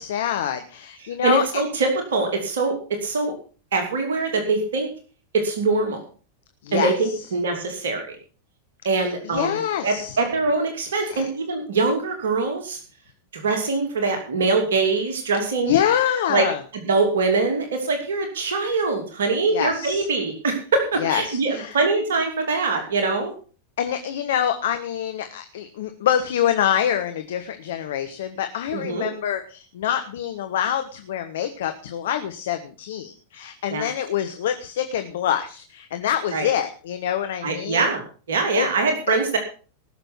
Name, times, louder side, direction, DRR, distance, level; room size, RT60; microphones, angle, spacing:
voice 1, 0.0-1.6 6.6-6.9 9.0-10.2 11.0-11.3 15.7-16.6 19.5-20.1 21.0-21.8 23.8-37.9 38.6-38.7 39.1-39.2, left 10 dB, 60° left, 8 dB, 1.2 m, -25 dB
voice 2, 1.0-3.3 3.7-4.9 5.3-6.0 6.7-8.2 8.8-9.6 9.8-12.8 13.3-15.8 16.3-16.5 16.7-23.3 28.7-29.1 33.7-33.9 36.3-36.5 37.4-38.0 38.3-39.4, right 3 dB, 65° right, 4 dB, 2.9 m, -23 dB
19.0 x 6.8 x 6.1 m, 0.39 s
figure-of-eight pair, 90°, 0 cm